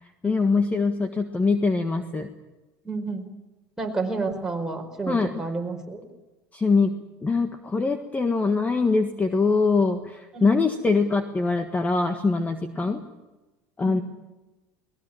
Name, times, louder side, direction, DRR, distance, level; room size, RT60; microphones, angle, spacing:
voice 1, 0.2-2.3 5.1-5.3 6.5-6.9 7.2-13.0 13.8-14.0, left 4 dB, 15° left, 7 dB, 1.6 m, -23 dB
voice 2, 2.8-3.2 3.8-6.0 10.3-10.5 12.8-12.9 13.8-14.0, right 3 dB, 5° right, 1 dB, 4.7 m, -30 dB
22.0 x 20.0 x 8.7 m, 1.1 s
supercardioid pair, 120°, 9 cm